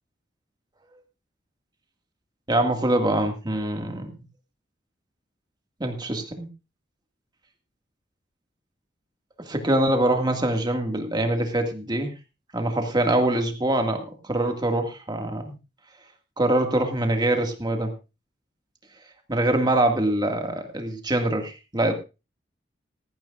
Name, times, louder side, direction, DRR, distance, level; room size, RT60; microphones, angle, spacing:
voice 1, 2.5-4.1 5.8-6.5 9.4-12.1 12.5-15.6 16.4-17.9 19.3-21.9, right 1 dB, 25° right, 4 dB, 2.0 m, -24 dB
18.0 x 14.0 x 2.5 m, 0.29 s
head